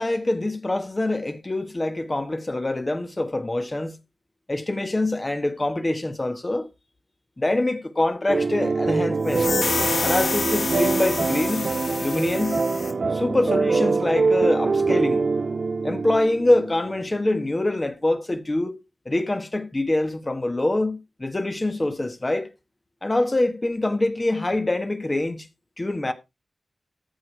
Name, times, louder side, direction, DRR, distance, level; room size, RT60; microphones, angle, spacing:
voice 1, 0.0-4.0 4.5-6.7 7.4-9.6 10.0-11.7 12.0-12.6 13.1-15.3 15.8-18.8 19.0-22.5 23.0-25.5 25.8-26.1, left 2 dB, 25° left, 1.3 m, -25 dB
sound 1, 8.3-17.0, right 4 dB, 60° right, 0.5 m, -24 dB
sound 2, 9.3-12.9, left 4 dB, 80° left, 1.9 m, -28 dB
14.5 x 4.9 x 4.6 m
wide cardioid pair, 120°, 0 cm